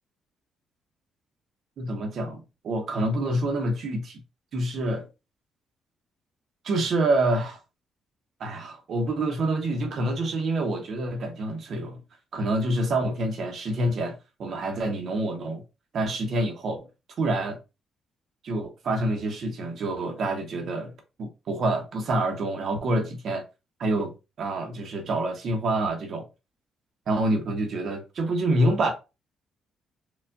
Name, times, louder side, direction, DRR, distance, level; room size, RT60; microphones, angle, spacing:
voice 1, 1.8-4.2 4.5-5.1 6.6-7.6 8.4-12.0 12.3-15.6 15.9-16.9 17.2-17.6 18.4-20.9 21.2-23.4 23.8-26.3 27.1-28.9, right 1 dB, 60° right, 0.9 m, -27 dB
4.5 x 2.4 x 2.6 m
cardioid pair, 90°, 0 cm